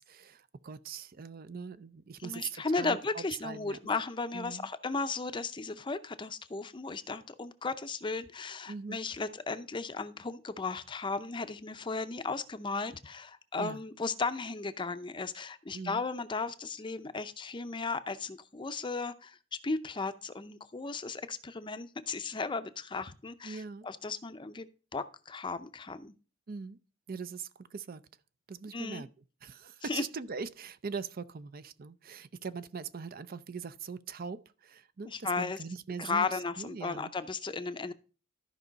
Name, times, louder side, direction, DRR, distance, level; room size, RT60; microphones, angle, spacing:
voice 1, 0.0-3.8 4.3-4.7 8.7-9.0 13.6-13.8 15.7-16.0 23.4-23.9 26.5-26.8 27.1-28.0 28.5-37.1, right 5 dB, 50° right, 0.5 m, -41 dB
voice 2, 2.2-19.4 19.6-26.1 28.7-29.0 29.9-30.0 35.1-35.6 36.0-37.9, left 4 dB, 25° left, 0.6 m, -35 dB
13.5 x 5.4 x 4.0 m
head